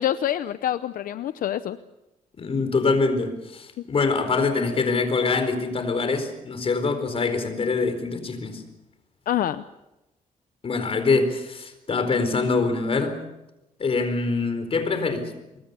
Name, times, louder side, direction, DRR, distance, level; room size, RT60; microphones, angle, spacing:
voice 1, 0.0-1.8 9.3-9.6, left 11 dB, 80° left, 0.7 m, -26 dB
voice 2, 2.4-8.6 10.6-13.2 13.8-15.3, left 4 dB, 40° left, 4.4 m, -24 dB
25.0 x 22.0 x 7.0 m
cardioid pair, 115°, 14 cm